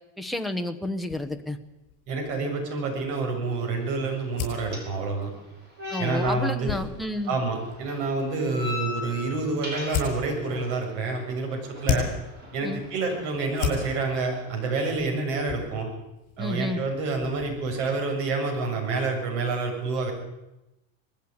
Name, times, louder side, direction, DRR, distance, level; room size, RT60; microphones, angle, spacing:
voice 1, 0.2-1.6 5.9-7.4 12.6-12.8 16.4-16.8, left 1 dB, ahead, 3 dB, 0.9 m, -30 dB
sound 1, 1.0-17.9, left 8 dB, 55° left, 7.3 m, -38 dB
voice 2, 2.1-5.3 6.0-6.8 7.3-12.1 12.5-15.9 16.4-20.1, right 3 dB, 60° right, 2 dB, 7.3 m, -28 dB
sound 2, 3.4-14.9, left 3 dB, 25° right, 6.4 m, -42 dB
20.0 x 15.0 x 9.6 m, 0.97 s
supercardioid pair, 160°, 42 cm